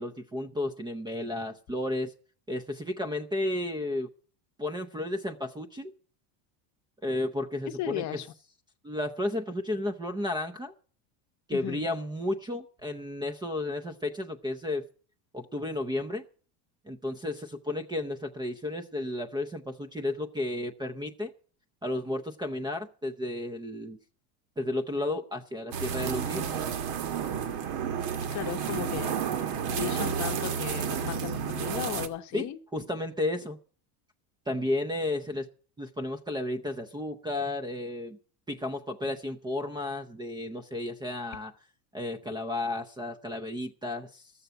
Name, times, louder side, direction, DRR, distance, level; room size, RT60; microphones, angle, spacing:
voice 1, 0.0-2.1 2.5-4.1 4.6-5.9 7.0-8.2 8.8-10.7 11.5-14.9 15.3-16.2 16.9-21.3 21.8-24.0 24.6-26.6 32.3-33.6 34.5-35.5 35.8-38.2 38.5-41.5 41.9-44.3, left 1 dB, 10° right, 0.5 m, -33 dB
voice 2, 7.8-8.3 11.5-11.8 28.3-29.2 29.7-32.6, left 13 dB, 40° left, 0.8 m, -35 dB
sound 1, 25.7-32.1, right 7 dB, 65° right, 1.6 m, -31 dB
13.5 x 7.0 x 7.9 m
cardioid pair, 140°, 44 cm